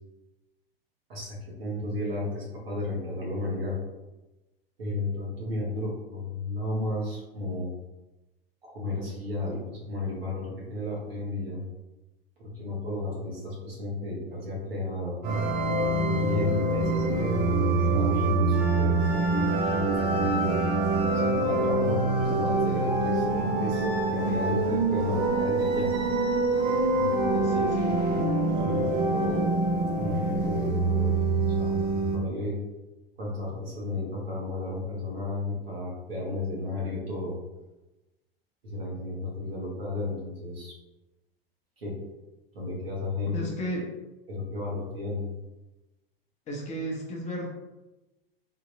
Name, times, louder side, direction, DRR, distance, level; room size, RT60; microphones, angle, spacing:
voice 1, 1.1-3.8 4.8-7.7 8.6-11.6 12.4-15.2 15.9-19.1 19.3-20.6 21.2-25.9 26.9-27.8 28.6-29.4 30.0-31.1 31.4-31.7 32.1-32.6 33.2-37.4 38.6-40.7 41.8-41.9 42.5-43.6 44.3-45.3, left 2 dB, 75° right, -4 dB, 1.4 m, -33 dB
sound 1, 15.2-32.2, right 2 dB, 35° right, 0.6 m, -25 dB
voice 2, 27.3-27.9 43.3-43.9 46.5-47.5, equal, 25° left, -1 dB, 0.8 m, -34 dB
3.6 x 2.8 x 2.6 m, 1.0 s
figure-of-eight pair, 90°, 30 cm